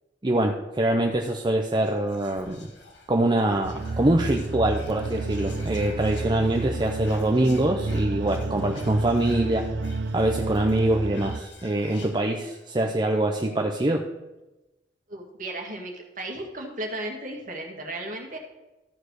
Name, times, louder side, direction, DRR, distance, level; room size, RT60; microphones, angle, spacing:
voice 1, 0.2-2.7 3.1-9.7 10.1-14.0, right 1 dB, 25° right, 2 dB, 0.6 m, -24 dB
Whispering, 1.7-12.8 13.1-13.2 13.4-13.8, left 2 dB, 80° left, 2.1 m, -48 dB
sound 1, 3.6-11.4, right 3 dB, 70° right, 0.4 m, -30 dB
voice 2, 15.1-18.4, right 1 dB, 45° right, 1 dB, 2.0 m, -35 dB
13.5 x 4.8 x 6.4 m, 1.0 s
head